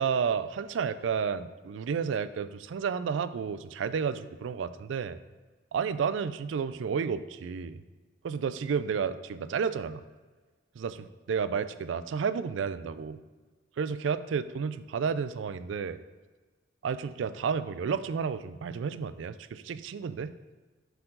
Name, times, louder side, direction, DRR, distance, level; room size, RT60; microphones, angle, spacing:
voice 1, 0.0-5.2 5.7-7.8 8.2-10.0 10.8-13.2 13.8-16.0 16.8-20.3, right 6 dB, 75° right, 14 dB, 0.3 m, -31 dB
7.8 x 4.6 x 3.8 m, 1.3 s
head